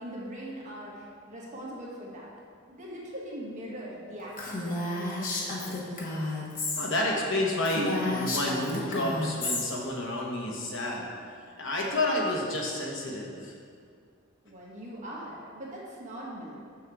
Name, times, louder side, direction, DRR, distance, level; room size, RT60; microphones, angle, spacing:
voice 1, 0.0-2.3 2.7-5.9 14.4-16.6, equal, 35° right, -5 dB, 1.5 m, -41 dB
Female speech woman speaking, 4.4-6.9 7.2-7.3 7.6-9.6, left 2 dB, 45° left, 1.1 m, -31 dB
voice 2, 6.8-11.1 11.6-13.5, left 1 dB, 65° left, -1 dB, 1.1 m, -30 dB
6.5 x 6.3 x 3.6 m, 2.3 s
head